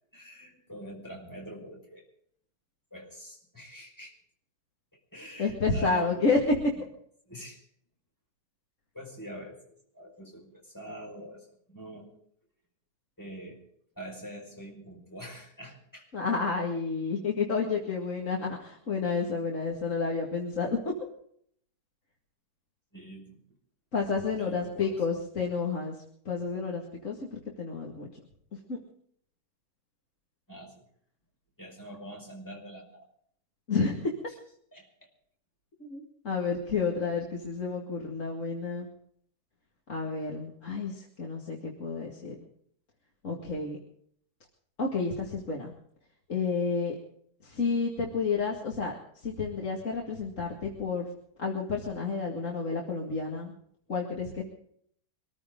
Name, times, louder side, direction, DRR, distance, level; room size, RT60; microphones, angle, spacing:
voice 1, 0.1-2.1 2.9-4.2 5.1-6.3 7.3-7.7 8.9-12.1 13.2-13.7 14.0-16.1 22.9-23.4 24.2-25.0 30.5-30.9 31.6-33.1 34.3-34.4 34.7-35.1, equal, 10° left, -1 dB, 5.5 m, -45 dB
voice 2, 5.4-6.5 16.1-20.8 23.9-26.0 26.3-28.1 28.5-28.8 33.7-34.1 35.8-38.9 39.9-42.4 43.2-43.8 44.8-45.7 46.3-47.0 47.4-48.9 49.2-51.1 51.4-53.5 53.9-54.4, left 4 dB, 45° left, -1 dB, 2.4 m, -30 dB
24.5 x 14.5 x 3.8 m, 0.65 s
omnidirectional pair, 1.9 m